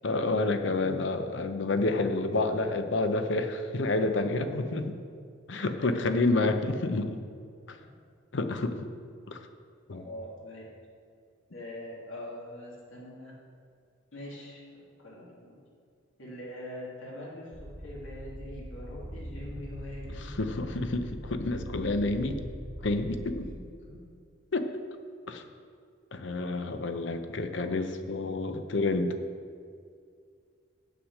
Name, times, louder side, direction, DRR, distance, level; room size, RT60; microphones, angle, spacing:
voice 1, 0.0-4.8 5.5-7.2 7.7-7.8 8.3-8.9 9.3-9.4 9.9-10.0 20.2-22.4 22.8-23.5 24.5-24.7 25.3-25.4 26.1-29.2, left 2 dB, 65° left, 8 dB, 0.7 m, -29 dB
voice 2, 9.9-10.6 11.5-13.3 14.1-15.6 16.2-20.3 23.3-23.6, left 1 dB, 85° left, -5 dB, 2.5 m, -43 dB
sound 1, 17.5-23.5, equal, 35° left, 1.8 m, -42 dB
8.0 x 6.7 x 6.0 m, 2.2 s
head